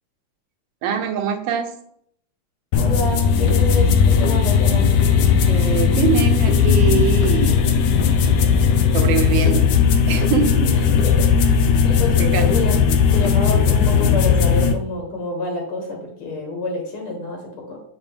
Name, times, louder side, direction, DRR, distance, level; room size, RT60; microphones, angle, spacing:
voice 1, 0.8-1.7 5.5-7.6 8.9-9.7 10.1-10.7 12.2-12.5, right 7 dB, 70° right, 7 dB, 1.5 m, -23 dB
voice 2, 2.7-4.9 10.6-11.6 11.8-12.8 13.1-17.8, left 2 dB, 90° left, 0 dB, 2.2 m, -28 dB
sound 1, 2.7-14.7, left 6 dB, 70° left, 1.1 m, -17 dB
8.1 x 4.7 x 3.5 m, 0.68 s
omnidirectional pair, 2.3 m